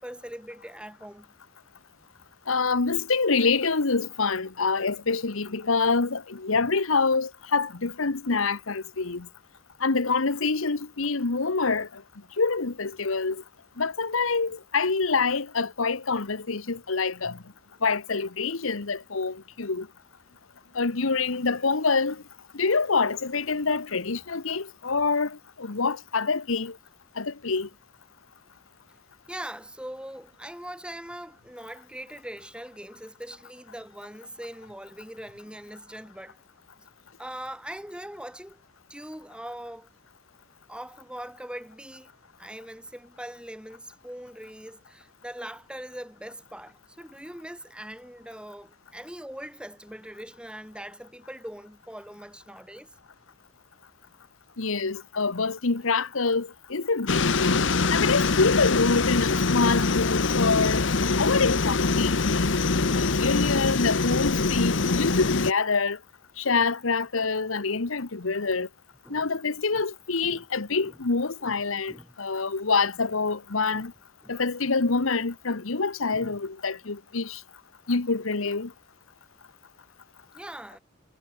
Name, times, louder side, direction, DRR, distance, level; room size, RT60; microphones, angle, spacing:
voice 1, 0.0-1.3 6.5-6.7 29.3-36.4 37.2-38.6 38.9-39.9 40.7-42.1 42.4-52.9 66.5-66.6 69.1-69.3 69.7-69.8 70.2-70.5 70.8-71.0 71.4-71.6 71.9-72.1 73.7-73.9 74.2-74.4 74.9-75.0 76.1-76.4 80.3-80.8, right 1 dB, 5° right, 5.4 m, -41 dB
voice 2, 2.5-9.3 9.8-12.0 12.4-13.4 13.8-17.4 17.8-19.9 20.7-22.2 22.5-26.8 27.2-27.7 54.6-62.5 62.9-66.0 66.4-68.7 69.1-71.9 72.2-73.9 74.3-77.4 77.9-78.7, left 4 dB, 80° left, 1.2 m, -26 dB
sound 1, 57.1-65.5, left 3 dB, 60° left, 1.0 m, -24 dB
head